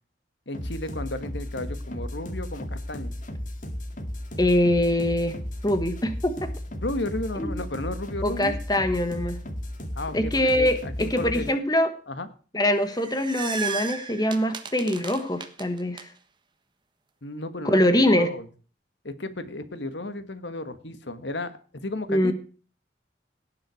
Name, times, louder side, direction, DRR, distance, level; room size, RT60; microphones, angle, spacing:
voice 1, 0.5-3.1 6.8-8.6 10.0-11.5 12.1-12.3 17.2-18.5 19.0-22.3, left 2 dB, 75° left, 11 dB, 1.6 m, -33 dB
sound 1, 0.5-11.5, equal, 45° left, 2.1 m, -34 dB
voice 2, 4.4-5.3 5.6-6.5 7.4-7.5 8.2-9.4 10.1-11.9 12.5-16.1 17.6-18.3 22.1-22.3, left 1 dB, 20° left, 9 dB, 1.4 m, -23 dB
sound 2, 12.7-16.0, right 5 dB, 25° right, 1.3 m, -35 dB
17.5 x 7.7 x 6.4 m, 0.39 s
head